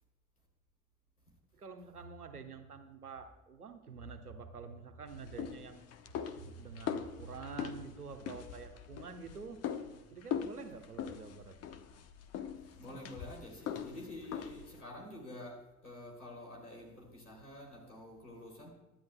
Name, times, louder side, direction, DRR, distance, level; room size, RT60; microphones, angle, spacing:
voice 1, 1.5-5.8 6.3-9.6 10.1-11.6, right 5 dB, 85° right, 6 dB, 1.2 m, -47 dB
sound 1, 5.1-14.8, left 8 dB, 35° left, 1.0 m, -42 dB
voice 2, 12.6-18.7, left 1 dB, 85° left, 0 dB, 3.0 m, -48 dB
23.0 x 10.5 x 2.2 m, 1.1 s
figure-of-eight pair, 70°, 44 cm